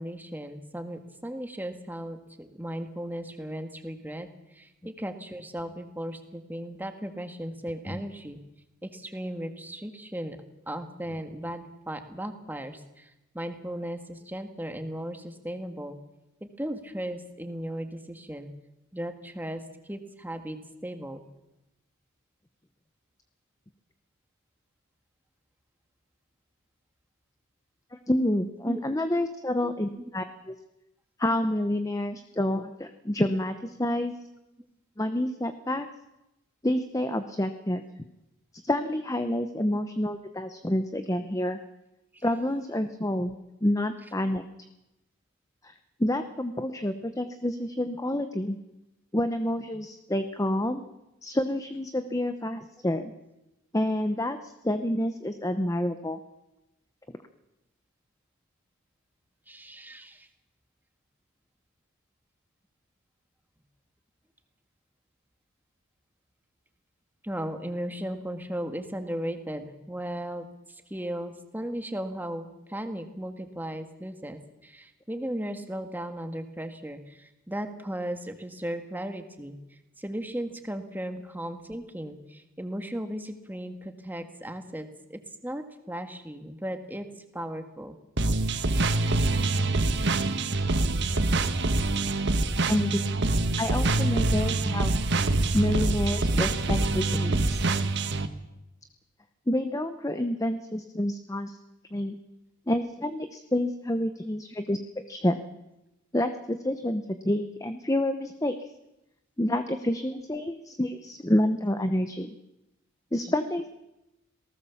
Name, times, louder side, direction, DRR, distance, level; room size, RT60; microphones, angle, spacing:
voice 1, 0.0-4.3 4.5-8.4 8.8-10.4 10.7-16.0 16.4-18.5 18.9-19.6 19.9-21.2 28.6-28.8 29.6-29.7 39.7-39.8 42.1-42.2 59.5-60.3 67.2-79.6 80.0-87.1 87.3-88.0, right 1 dB, 10° right, 7 dB, 1.8 m, -36 dB
voice 2, 28.1-30.5 31.2-34.1 35.0-35.9 36.6-37.8 38.6-41.6 42.2-43.3 43.6-44.4 45.6-45.7 46.0-48.6 49.1-50.8 51.2-53.1 53.7-56.2 92.7-93.0 93.6-94.9 95.5-97.6 99.5-101.6 101.9-102.2 102.7-104.8 105.1-105.4 106.1-108.6 109.4-112.3 113.1-113.7, left 1 dB, 15° left, 9 dB, 0.9 m, -28 dB
sound 1, 88.2-98.3, right 2 dB, 55° right, 1.5 m, -25 dB
27.0 x 18.5 x 7.2 m, 0.95 s
head